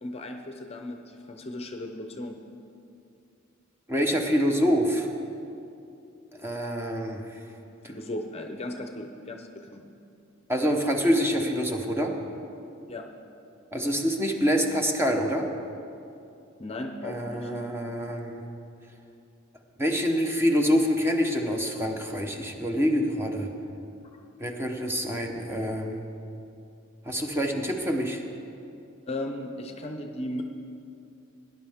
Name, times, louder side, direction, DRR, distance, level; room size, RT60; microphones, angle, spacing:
voice 1, 0.0-2.4 7.8-9.9 12.9-13.1 16.6-17.5 24.1-24.2 29.1-30.4, left 1 dB, 30° left, 5 dB, 0.7 m, -36 dB
voice 2, 3.9-5.1 6.4-7.3 10.5-12.1 13.7-15.5 17.0-18.4 19.8-23.5 24.4-26.0 27.1-28.2, equal, 10° right, 2 dB, 1.0 m, -26 dB
18.0 x 10.5 x 3.6 m, 2.6 s
head